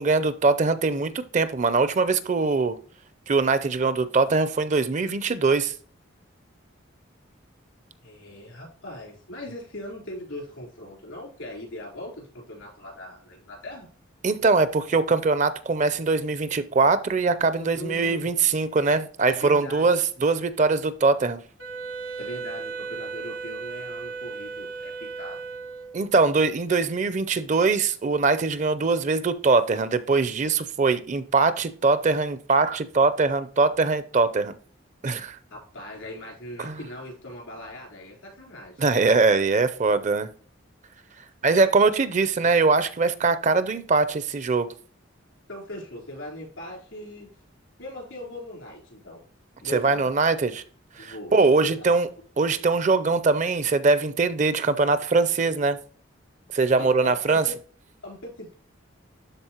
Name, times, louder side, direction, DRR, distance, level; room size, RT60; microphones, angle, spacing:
voice 1, 0.0-2.8 3.3-5.7 14.2-21.4 25.9-34.5 35.0-35.4 36.6-36.8 38.8-40.3 41.4-44.7 49.7-50.6 51.0-52.1 52.4-55.8 56.5-57.4, right 4 dB, 35° right, 13 dB, 0.5 m, -22 dB
voice 2, 8.0-13.9 17.6-18.3 19.3-19.9 22.2-25.4 35.5-38.8 45.5-47.3 47.8-49.2 49.6-50.1 51.0-51.3 51.6-51.9 56.8-57.6 58.0-58.5, left 1 dB, 90° left, -1 dB, 3.9 m, -40 dB
Wind instrument woodwind instrument, 21.6-26.1, right 4 dB, 70° right, 1.4 m, -36 dB
12.0 x 4.2 x 2.9 m, 0.42 s
head